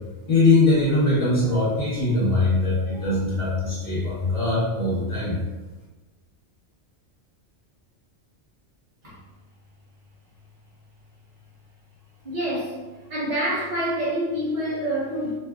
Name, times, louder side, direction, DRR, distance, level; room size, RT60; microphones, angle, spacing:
voice 1, 0.3-5.4, left 2 dB, 40° left, -9 dB, 1.5 m, -21 dB
voice 2, 12.2-15.4, right 1 dB, 45° right, -9 dB, 1.4 m, -27 dB
3.1 x 3.0 x 2.4 m, 1.2 s
omnidirectional pair, 1.2 m